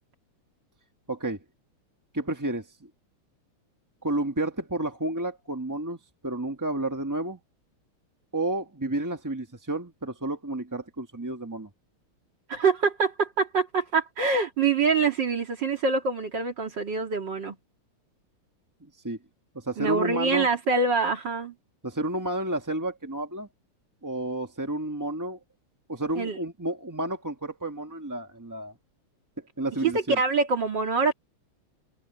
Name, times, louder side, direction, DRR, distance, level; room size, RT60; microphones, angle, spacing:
voice 1, 1.1-1.4 2.1-2.7 4.0-6.0 6.2-7.4 8.3-11.7 19.0-19.2 19.5-20.5 21.8-23.5 24.0-25.4 25.9-28.7 29.6-30.2, right 1 dB, 15° right, 0.8 m, -31 dB
voice 2, 12.5-17.5 19.8-21.5 26.2-26.4 29.8-31.1, right 4 dB, 55° right, 2.7 m, -25 dB
omnidirectional pair, 2.4 m